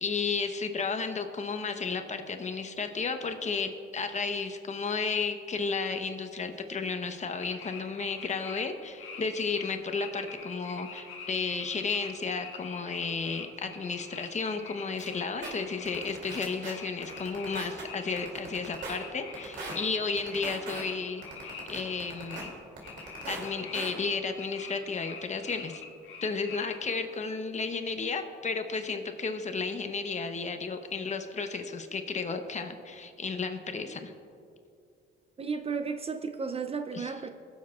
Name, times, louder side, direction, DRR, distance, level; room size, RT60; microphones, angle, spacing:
voice 1, 0.0-22.5 23.3-25.8 26.2-34.1 36.9-37.1, left 4 dB, 35° left, 7 dB, 0.9 m, -33 dB
sound 1, 7.4-8.6 9.0-12.1 12.4-22.5 22.8-27.0, left 6 dB, 85° left, 1.4 m, -44 dB
sound 2, 15.0-15.1 15.4-15.5 15.9-16.7 17.0-17.8 18.2-19.0 19.3-19.7 20.2-20.8 21.2-22.4 22.8-23.5 23.7-23.9, right 3 dB, 65° right, 2.7 m, -39 dB
voice 2, 35.4-37.3, right 5 dB, 30° right, 7 dB, 0.5 m, -33 dB
20.5 x 7.4 x 2.4 m, 2.4 s
cardioid pair, 90°, 20 cm